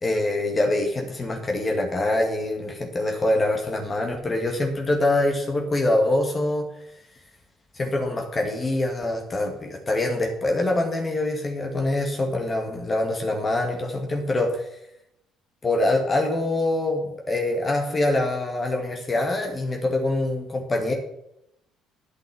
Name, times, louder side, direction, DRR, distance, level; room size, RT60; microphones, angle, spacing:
voice 1, 0.0-6.6 7.7-14.7 15.6-20.9, left 2 dB, 30° left, 2 dB, 2.2 m, -24 dB
9.1 x 7.6 x 7.2 m, 0.79 s
hypercardioid pair, 55°, 0 cm